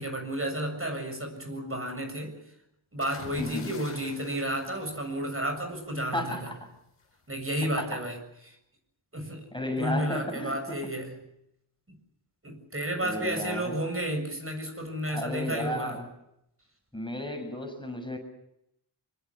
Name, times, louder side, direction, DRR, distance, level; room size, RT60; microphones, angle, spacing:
voice 1, 0.0-2.3 2.9-6.5 7.3-8.2 9.1-9.4 9.8-11.2 12.4-16.0, right 1 dB, 25° right, 5 dB, 7.4 m, -32 dB
sound 1, 3.0-5.8 7.0-7.3, left 4 dB, 75° left, 4.8 m, -47 dB
voice 2, 3.4-3.7 6.1-6.6 7.8-8.0 9.5-10.8 13.0-13.7 15.1-16.1 16.9-18.2, left 1 dB, 10° left, 4 dB, 7.2 m, -33 dB
24.5 x 24.5 x 7.5 m, 0.79 s
cardioid pair, 55°, 50 cm